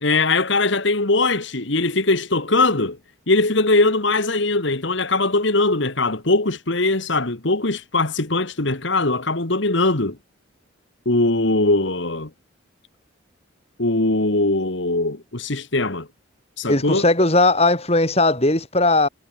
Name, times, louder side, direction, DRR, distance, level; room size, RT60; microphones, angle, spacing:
voice 1, 0.0-3.0 3.3-10.2 11.1-12.3 13.8-16.1 16.6-17.1, left 2 dB, 65° left, 2.0 m, -20 dB
voice 2, 16.7-19.1, left 2 dB, 30° left, 4.2 m, -18 dB
head